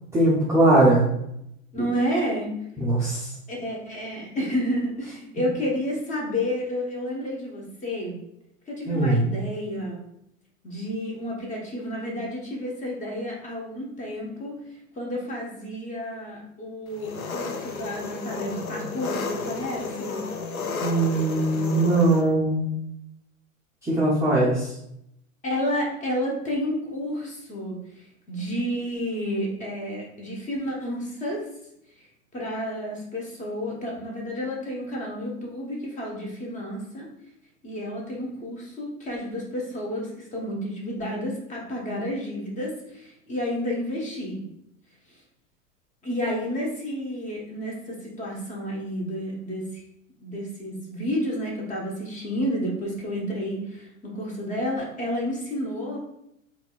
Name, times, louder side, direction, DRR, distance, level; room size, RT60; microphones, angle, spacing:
voice 1, 0.1-1.1 2.8-3.3 8.9-9.2 20.8-22.7 23.8-24.7, right 2 dB, 5° right, -8 dB, 0.5 m, -20 dB
voice 2, 1.7-2.5 3.5-8.2 8.7-10.0 10.6-14.6 14.9-20.2 25.4-31.5 32.3-37.1 37.6-44.4 46.0-49.7 50.2-56.0, equal, 20° left, -2 dB, 0.9 m, -30 dB
Engine, 17.0-22.2, left 4 dB, 85° left, 0.5 m, -32 dB
3.7 x 2.5 x 2.3 m, 0.78 s
figure-of-eight pair, 95°, 41 cm